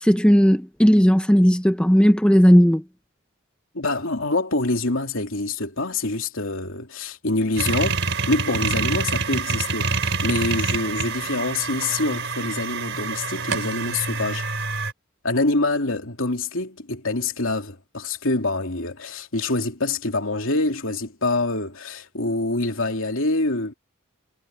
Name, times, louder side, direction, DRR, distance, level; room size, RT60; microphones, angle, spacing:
voice 1, 0.0-2.8, equal, 5° left, 1.1 m, -16 dB
voice 2, 3.7-8.0 8.3-14.5 15.2-23.7, left 2 dB, 65° left, 3.1 m, -25 dB
sound 1, 7.6-14.9, right 4 dB, 60° right, 5.0 m, -26 dB
head